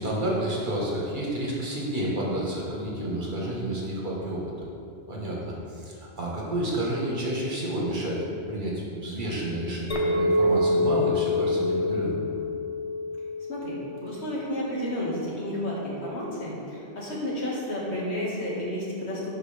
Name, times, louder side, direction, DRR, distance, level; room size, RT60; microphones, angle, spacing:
voice 1, 0.0-4.7 5.1-5.4 5.7-12.2, right 1 dB, 50° right, -4 dB, 1.5 m, -30 dB
Chink clink, 9.9-14.4, left 2 dB, 35° left, 0.7 m, -26 dB
voice 2, 13.5-19.3, left 1 dB, 85° left, -6 dB, 2.0 m, -31 dB
11.0 x 4.7 x 3.4 m, 2.9 s
omnidirectional pair, 1.1 m